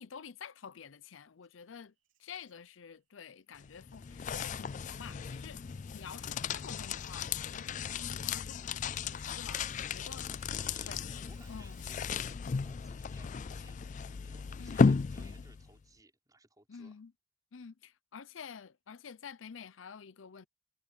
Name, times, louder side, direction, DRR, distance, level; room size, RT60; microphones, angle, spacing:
voice 1, 0.0-1.9 2.2-5.6 5.9-10.3 10.9-11.9 14.6-14.9 16.7-17.1 17.5-20.5, left 6 dB, 85° left, 0.6 m, -49 dB
Insect, 1.7-12.3, right 7 dB, 85° right, 3.8 m, -68 dB
sound 1, 3.5-15.7, left 5 dB, 40° left, 0.3 m, -35 dB
voice 2, 10.6-11.0 11.3-12.2 12.5-17.0, right 3 dB, 20° right, 5.9 m, -62 dB
head